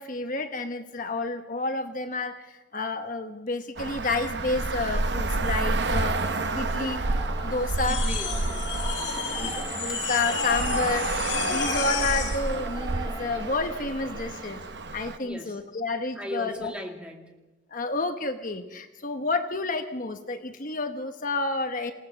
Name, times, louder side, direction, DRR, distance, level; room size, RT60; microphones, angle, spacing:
voice 1, 0.0-7.0 7.4-8.0 9.4-11.3 11.5-14.6 14.9-16.7 17.7-21.9, left 3 dB, 45° left, 6 dB, 1.1 m, -30 dB
Traffic noise roadway noise, 3.8-15.2, right 2 dB, 60° right, 0.9 m, -30 dB
Singing / Musical instrument, 5.8-14.7, right 3 dB, 20° right, 1.7 m, -41 dB
sound 1, 7.7-12.5, left 6 dB, 80° left, 4.1 m, -31 dB
voice 2, 7.9-10.0 10.7-11.1 11.4-11.8 15.2-15.6 16.1-17.3, equal, 5° right, 1 dB, 2.5 m, -40 dB
28.0 x 17.0 x 6.9 m, 1.1 s
head